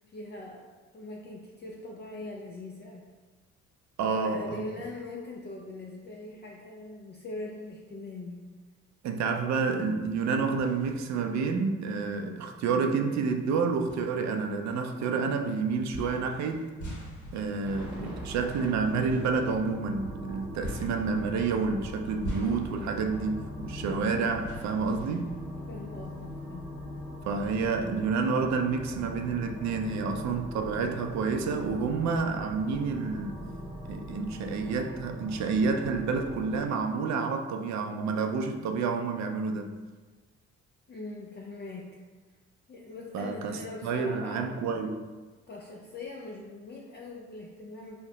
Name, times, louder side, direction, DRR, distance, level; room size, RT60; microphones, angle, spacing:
voice 1, 0.1-0.7 0.9-3.0 4.1-8.5 25.7-26.7 40.9-41.9 42.7-44.5 45.5-48.0, left 2 dB, 35° left, -2 dB, 0.4 m, -41 dB
voice 2, 4.0-4.6 9.0-16.7 17.3-25.3 27.3-33.4 33.9-39.8 43.1-45.0, right 4 dB, 65° right, 5 dB, 0.4 m, -29 dB
sound 1, 9.8-11.4 11.9-12.0 13.0-13.1 13.9-15.3 15.9-26.3 26.6-26.7 27.5-28.6, equal, 75° left, 1.0 m, -45 dB
sound 2, 17.6-36.6, equal, 5° right, 1.0 m, -41 dB
2.8 x 2.1 x 3.8 m, 1.3 s
cardioid pair, 90°, 30 cm